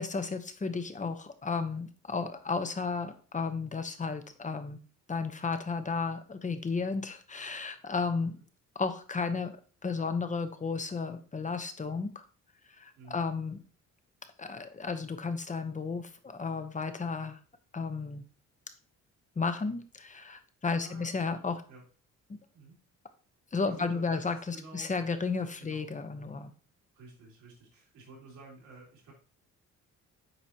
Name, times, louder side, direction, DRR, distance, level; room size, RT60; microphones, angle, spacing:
voice 1, 0.0-4.8 5.1-8.4 8.8-9.5 9.8-12.2 12.7-13.6 14.4-17.4 17.7-18.2 19.4-21.6 22.3-22.4 23.5-26.5, left 4 dB, 25° left, 9 dB, 0.9 m, -33 dB
voice 2, 20.7-21.1 21.7-21.8 22.5-22.8 23.6-25.0 25.6-25.9 26.9-29.1, right 2 dB, 85° right, -3 dB, 3.1 m, -51 dB
8.0 x 4.8 x 2.8 m, 0.40 s
cardioid pair, 90°, 30 cm